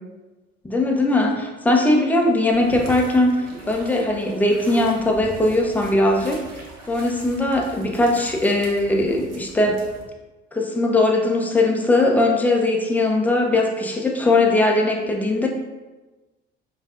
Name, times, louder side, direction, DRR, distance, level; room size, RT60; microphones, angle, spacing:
voice 1, 0.6-6.4 6.9-9.8 10.5-15.5, left 2 dB, 5° left, 1 dB, 0.5 m, -20 dB
sound 1, 2.5-10.1, right 2 dB, 45° right, 0.9 m, -41 dB
5.2 x 2.5 x 2.5 m, 1.2 s
figure-of-eight pair, 55°, 37 cm